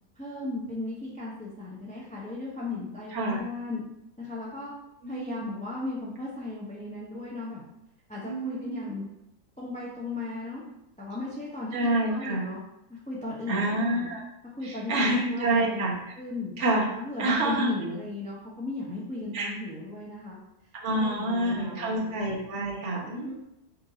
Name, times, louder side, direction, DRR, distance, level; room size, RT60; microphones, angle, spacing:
voice 1, 0.2-3.8 4.2-4.8 5.1-7.6 8.1-9.1 9.6-10.6 11.0-12.6 12.9-14.1 14.6-15.8 16.2-16.5 16.9-20.4 20.9-22.1 23.0-23.3, left 3 dB, 10° left, -6 dB, 0.4 m, -36 dB
voice 2, 5.0-5.5 8.2-8.9 11.7-12.4 13.5-14.2 14.6-16.1 16.6-16.9 17.2-17.7 19.3-19.5 20.8-23.3, right 1 dB, 50° right, -3 dB, 1.2 m, -27 dB
4.5 x 2.6 x 3.8 m, 0.84 s
omnidirectional pair, 1.6 m